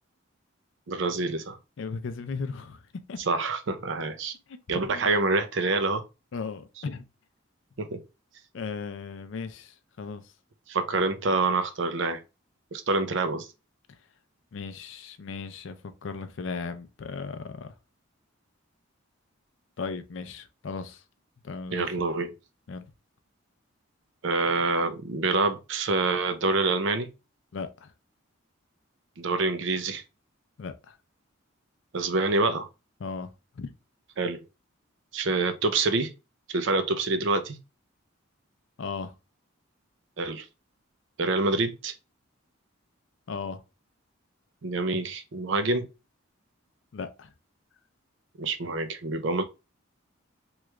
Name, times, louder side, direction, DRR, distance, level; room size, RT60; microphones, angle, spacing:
voice 1, 0.9-1.6 3.3-4.3 4.7-6.0 7.8-8.0 10.7-12.2 12.7-13.5 21.7-22.3 24.2-27.1 29.2-30.0 31.9-32.7 34.2-34.4 35.1-36.1 36.5-37.6 40.2-40.5 41.2-41.9 44.6-45.9 48.4-49.4, right 3 dB, 60° right, 0.5 m, -26 dB
voice 2, 1.8-2.8 3.1-3.2 4.5-5.1 6.3-7.0 8.5-10.2 10.9-11.1 14.5-17.7 19.8-21.0 21.4-22.0 22.7-22.9 27.5-27.9 30.6-31.0 33.0-33.3 33.6-33.7 38.8-39.1 43.3-43.6 46.9-47.3, left 4 dB, 65° left, 0.4 m, -36 dB
3.0 x 2.4 x 3.2 m
head